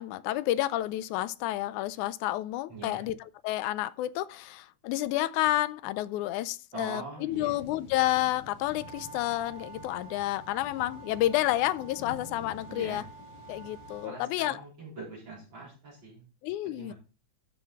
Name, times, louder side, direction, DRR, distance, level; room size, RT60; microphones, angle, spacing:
voice 1, 0.0-3.2 3.4-13.0 13.5-14.6 16.4-16.9, left 15 dB, 90° left, 2.0 m, -30 dB
voice 2, 2.7-3.1 6.7-7.6 12.7-13.0 14.0-16.2 16.8-16.9, right 3 dB, 40° right, 4.7 m, -43 dB
sound 1, 7.3-14.1, left 3 dB, 40° left, 1.8 m, -49 dB
sound 2, 8.7-14.2, right 5 dB, 15° left, 2.1 m, -49 dB
12.5 x 5.5 x 4.1 m
omnidirectional pair, 3.4 m